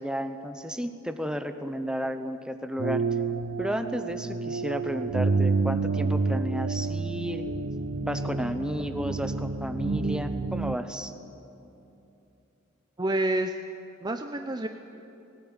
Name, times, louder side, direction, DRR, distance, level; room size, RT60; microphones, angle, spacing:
voice 1, 0.0-3.0 3.6-7.4 8.0-11.1, equal, 5° right, 8 dB, 1.0 m, -32 dB
sound 1, 2.8-10.8, right 4 dB, 65° right, 0.7 m, -29 dB
voice 2, 13.0-13.5 14.0-14.7, right 1 dB, 20° right, 6 dB, 0.7 m, -28 dB
19.0 x 18.5 x 9.0 m, 2.8 s
head